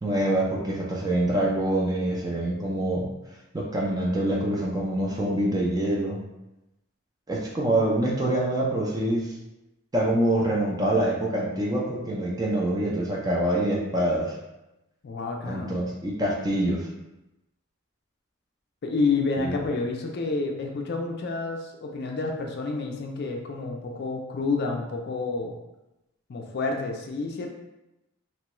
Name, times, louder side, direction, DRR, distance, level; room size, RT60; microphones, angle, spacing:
voice 1, 0.0-3.1 3.5-6.2 7.3-9.3 9.9-14.3 15.4-16.9 19.4-19.5, right 1 dB, 20° right, -2 dB, 0.4 m, -25 dB
voice 2, 15.0-15.8 18.8-25.5 26.3-27.5, left 3 dB, 50° left, 2 dB, 0.4 m, -29 dB
3.0 x 2.3 x 2.9 m, 0.94 s
head